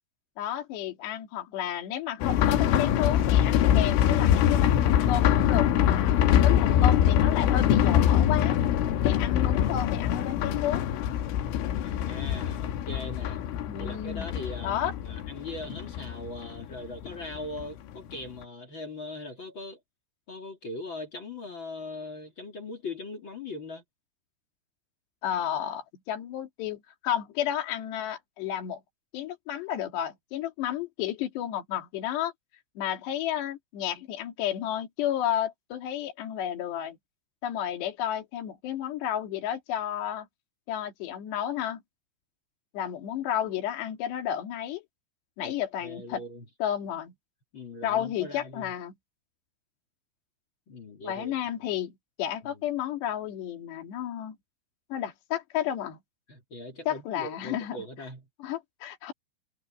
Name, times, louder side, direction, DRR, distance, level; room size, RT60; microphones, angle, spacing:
voice 1, 0.4-6.2 6.4-8.6 9.0-10.8 13.7-14.3 14.6-14.9 25.2-28.8 29.1-32.3 32.8-37.0 37.4-40.3 40.7-41.8 42.7-44.8 45.4-46.2 46.6-47.1 47.8-48.9 51.0-51.9 52.2-54.4 54.9-56.0 56.9-57.8 58.4-59.1, left 10 dB, 60° left, 4.6 m, -32 dB
sound 1, 2.2-17.7 17.9-18.0 18.4-18.5, left 10 dB, 80° left, 3.9 m, -24 dB
voice 2, 11.8-13.4 13.8-19.8 20.3-23.8 45.4-45.5 45.8-46.4 47.5-48.7 50.7-51.3 52.4-52.6 56.3-58.3, left 2 dB, 35° left, 2.2 m, -40 dB
omnidirectional pair, 5.6 m